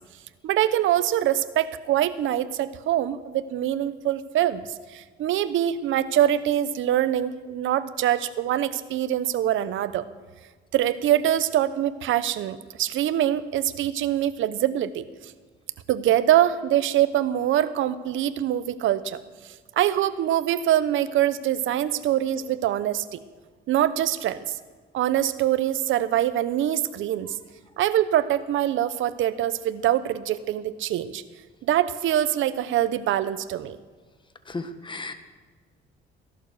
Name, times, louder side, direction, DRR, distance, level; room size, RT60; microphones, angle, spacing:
voice 1, 0.4-10.0 10.7-15.1 15.9-19.2 19.8-23.2 23.7-24.4 24.9-27.4 27.8-31.2 31.6-33.8, right 12 dB, 80° right, 14 dB, 0.9 m, -24 dB
voice 2, 34.5-35.1, left 3 dB, 25° left, 9 dB, 1.5 m, -34 dB
16.0 x 11.5 x 6.7 m, 1.5 s
cardioid pair, 90°, 20 cm